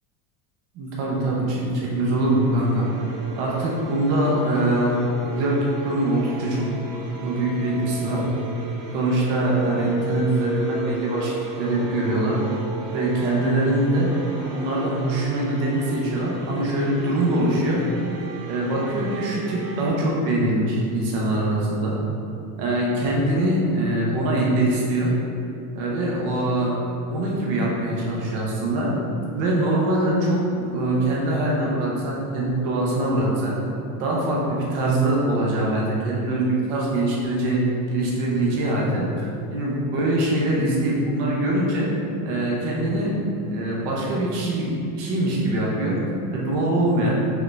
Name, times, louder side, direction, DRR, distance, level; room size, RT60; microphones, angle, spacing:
voice 1, 0.7-2.9 3.4-4.9 5.3-6.7 7.2-8.2 8.9-12.4 12.9-14.1 14.5-17.8 18.5-21.9 22.6-25.1 25.7-26.8 27.1-28.9 29.3-33.6 34.0-37.6 37.9-41.9 42.2-43.1 43.4-46.0 46.3-47.2, right 1 dB, 30° right, -4 dB, 0.4 m, -23 dB
sound 1, 1.9-19.9, right 2 dB, 75° right, 0.8 m, -35 dB
5.0 x 2.2 x 3.0 m, 2.5 s
supercardioid pair, 175°, 46 cm